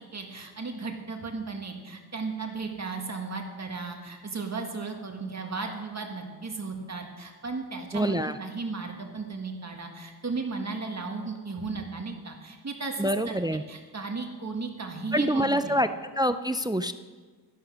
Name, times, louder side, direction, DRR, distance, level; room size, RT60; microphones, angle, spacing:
voice 1, 0.0-13.4 13.7-15.7, right 4 dB, 40° right, 3 dB, 1.7 m, -35 dB
voice 2, 7.9-8.4 13.0-13.6 15.1-16.9, equal, 10° right, 11 dB, 0.3 m, -26 dB
12.5 x 11.0 x 6.2 m, 1.4 s
wide cardioid pair, 145°, 40 cm